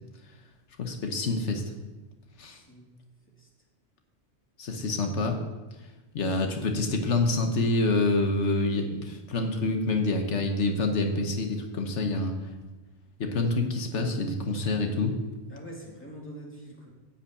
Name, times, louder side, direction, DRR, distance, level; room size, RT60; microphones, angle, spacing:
voice 1, 0.8-1.6 2.4-2.6 4.6-5.4 6.1-12.3 13.2-15.2, left 2 dB, 85° left, 4 dB, 1.4 m, -27 dB
voice 2, 2.4-2.9 3.4-3.5 15.5-16.9, right 1 dB, 10° left, -3 dB, 2.4 m, -44 dB
10.0 x 5.6 x 8.4 m, 1.2 s
omnidirectional pair, 1.2 m